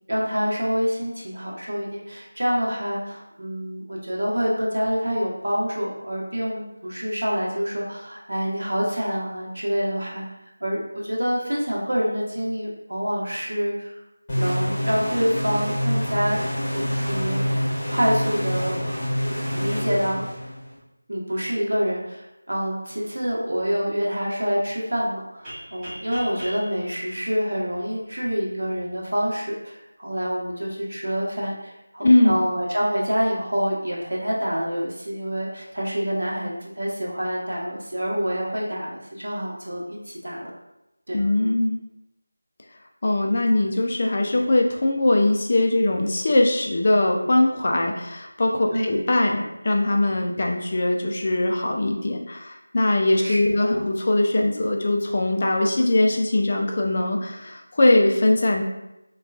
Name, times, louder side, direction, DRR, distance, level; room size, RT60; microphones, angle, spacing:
voice 1, 0.1-10.3 10.6-13.9 14.3-16.4 16.7-17.4 17.9-18.8 19.5-20.3 21.1-40.5 41.1-41.2 48.7-49.0 53.2-53.8, equal, 70° right, -4 dB, 1.0 m, -27 dB
sound 1, 14.3-20.8, equal, 15° left, 0.9 m, -26 dB
sound 2, 25.4-28.2, equal, 5° right, 0.6 m, -40 dB
voice 2, 32.0-32.4 41.1-41.8 43.0-58.6, left 1 dB, 30° left, 1 dB, 0.3 m, -21 dB
3.6 x 2.3 x 2.3 m, 0.90 s
figure-of-eight pair, 175°, 0 cm